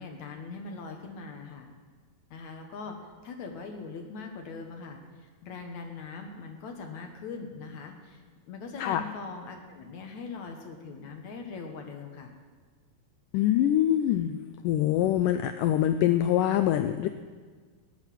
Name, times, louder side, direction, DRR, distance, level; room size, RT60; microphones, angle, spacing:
voice 1, 0.0-1.7 2.3-3.0 3.2-8.2 8.5-12.3, left 4 dB, 60° left, 3 dB, 2.3 m, -41 dB
voice 2, 13.3-14.4 14.6-17.1, left 11 dB, 85° left, 9 dB, 1.9 m, -24 dB
16.5 x 10.5 x 7.5 m, 1.5 s
omnidirectional pair, 4.3 m